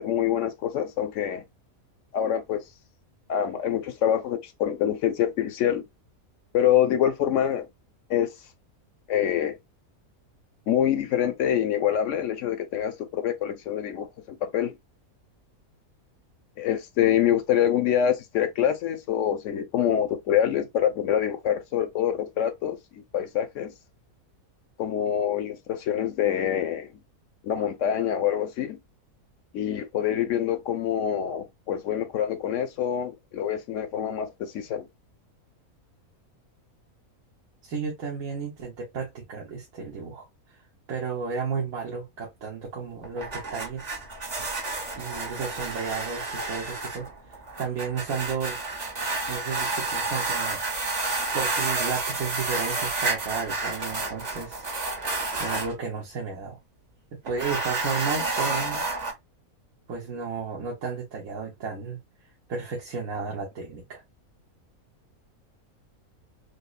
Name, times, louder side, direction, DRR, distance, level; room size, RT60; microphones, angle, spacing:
voice 1, 0.0-1.4 2.1-2.6 3.3-5.9 6.5-7.7 8.1-8.3 9.1-9.6 10.7-14.1 14.4-14.8 16.6-23.7 24.8-26.9 27.4-28.8 29.5-34.9, left 10 dB, 65° left, 0.9 m, -25 dB
voice 2, 37.6-40.6 40.9-44.0 45.0-48.6 49.3-50.6 51.3-54.7 55.4-56.6 57.1-58.8 59.9-62.0 62.5-64.0, right 5 dB, 70° right, 1.4 m, -33 dB
sound 1, 43.0-55.7 57.3-59.1, right 3 dB, 35° right, 0.9 m, -30 dB
5.2 x 2.0 x 2.3 m
omnidirectional pair, 1.5 m